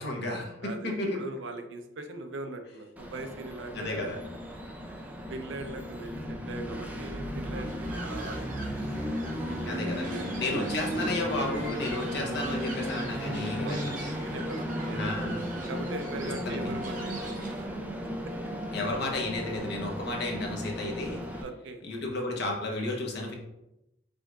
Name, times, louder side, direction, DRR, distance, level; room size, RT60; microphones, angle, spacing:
voice 1, 0.0-1.2 3.7-4.2 9.6-10.1 10.4-13.9 14.9-15.5 16.5-16.6 18.7-21.2 21.8-23.3, left 2 dB, 60° left, 0 dB, 0.9 m, -33 dB
voice 2, 0.6-4.1 5.0-6.2 6.5-8.5 9.5-10.7 11.9-12.0 13.6-14.6 14.8-15.2 15.7-17.3 21.4-21.8, right 2 dB, 75° right, 6 dB, 0.5 m, -40 dB
Train, 3.0-21.4, equal, 10° right, 0.4 m, -35 dB
sound 1, 7.5-17.7, right 3 dB, 45° right, 0.8 m, -46 dB
5.0 x 3.7 x 2.3 m, 0.89 s
head